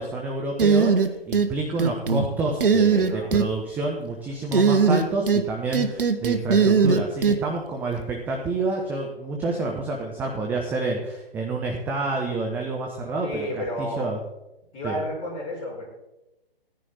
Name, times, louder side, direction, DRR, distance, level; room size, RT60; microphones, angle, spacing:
voice 1, 0.0-14.2 14.8-15.0, right 2 dB, 5° right, 1 dB, 0.6 m, -29 dB
sound 1, 0.6-1.5 1.8-2.2 2.6-3.5 4.5-5.5 5.7-7.4, right 5 dB, 65° right, 1.2 m, -19 dB
voice 2, 2.9-3.3 13.2-14.0 14.7-15.9, equal, 20° left, -3 dB, 4.5 m, -31 dB
15.5 x 10.0 x 4.0 m, 0.96 s
figure-of-eight pair, 130°, 30 cm